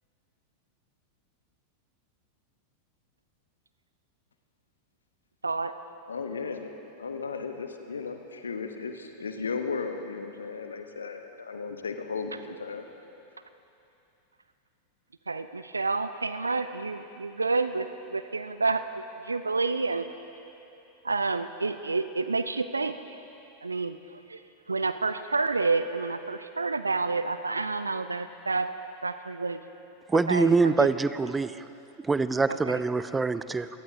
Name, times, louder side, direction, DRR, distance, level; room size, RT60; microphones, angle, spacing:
voice 1, 6.1-12.8, left 5 dB, 70° left, 6 dB, 1.0 m, -35 dB
voice 2, 15.3-20.0 21.0-22.9 23.6-24.4 24.7-28.7 29.0-29.6 30.1-30.9 32.5-32.8, right 3 dB, 80° right, 11 dB, 0.4 m, -29 dB
voice 3, 30.1-31.6 32.0-33.7, right 4 dB, 10° right, 14 dB, 0.4 m, -24 dB
26.0 x 18.5 x 2.8 m, 2.9 s
figure-of-eight pair, 90°, 0 cm